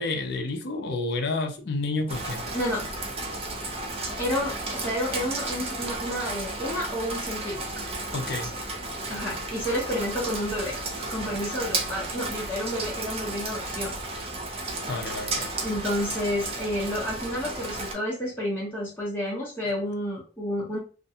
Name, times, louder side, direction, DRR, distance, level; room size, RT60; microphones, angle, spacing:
voice 1, 0.0-2.5 8.1-8.5 14.9-15.5 19.6-19.8, left 3 dB, 55° left, 0.5 m, -30 dB
Rain, 2.1-17.9, right 2 dB, 30° right, 0.4 m, -33 dB
voice 2, 2.5-2.9 4.2-7.8 9.1-10.8 11.1-13.9 15.6-20.8, equal, 10° left, 0.7 m, -30 dB
2.4 x 2.1 x 2.7 m
head